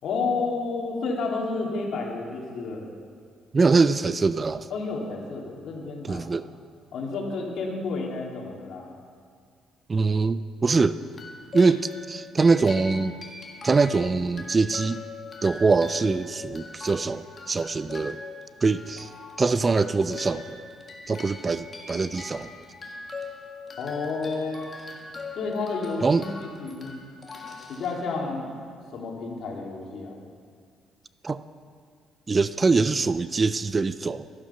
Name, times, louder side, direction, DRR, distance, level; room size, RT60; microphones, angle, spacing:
voice 1, 0.0-2.9 4.7-6.3 6.9-8.9 23.8-24.7 25.4-26.2 26.6-26.9 27.7-28.5 28.9-30.1, left 4 dB, 60° left, -2 dB, 2.7 m, -30 dB
voice 2, 3.5-4.7 6.0-6.5 9.9-11.0 11.5-13.1 13.6-15.0 15.4-18.2 18.6-19.1 19.4-20.6 21.1-22.5 26.0-26.3 31.2-31.4 32.3-34.4, right 4 dB, 25° right, 14 dB, 0.3 m, -23 dB
sound 1, 11.1-28.5, left 3 dB, 30° left, 1.7 m, -42 dB
13.0 x 13.0 x 5.7 m, 2.1 s
cardioid pair, 145°, 0 cm